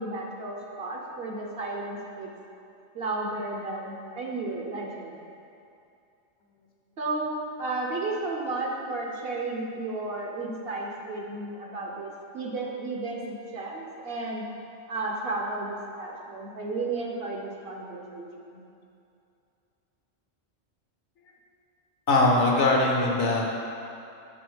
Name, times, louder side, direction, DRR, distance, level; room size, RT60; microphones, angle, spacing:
voice 1, 0.0-2.3 2.9-5.2 7.0-7.3 7.6-14.4 14.9-18.6, right 2 dB, 55° right, -1 dB, 0.9 m, -33 dB
voice 2, 22.1-23.5, left 2 dB, 70° left, -1 dB, 1.2 m, -21 dB
6.1 x 4.2 x 5.0 m, 2.6 s
omnidirectional pair, 1.3 m